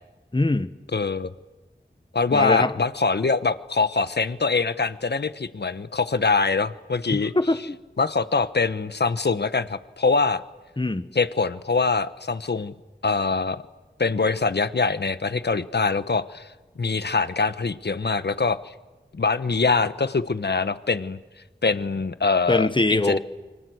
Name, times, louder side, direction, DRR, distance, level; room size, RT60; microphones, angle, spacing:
voice 1, 0.3-0.7 2.3-2.7 7.1-7.8 10.8-11.1 22.5-23.2, left 2 dB, 25° left, 11 dB, 1.3 m, -22 dB
voice 2, 0.9-1.3 2.1-7.3 8.0-10.4 11.1-12.7 13.0-13.6 14.0-16.5 16.8-18.7 19.1-21.2 21.6-23.2, left 4 dB, 65° left, 12 dB, 1.2 m, -23 dB
29.0 x 25.5 x 8.0 m, 1.2 s
wide cardioid pair, 70°, 18 cm